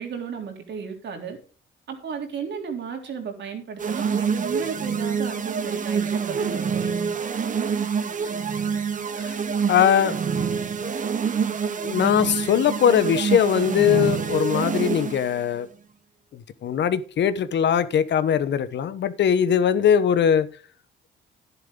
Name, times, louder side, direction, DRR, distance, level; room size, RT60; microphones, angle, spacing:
voice 1, 0.0-1.4 1.9-7.1, right 6 dB, 65° right, 3.5 m, -34 dB
sound 1, 3.8-15.4, right 6 dB, 40° right, 1.3 m, -26 dB
voice 2, 9.7-10.2 11.8-15.7 16.3-20.5, left 8 dB, 65° left, 1.0 m, -21 dB
11.0 x 10.5 x 3.8 m
cardioid pair, 90°, 20 cm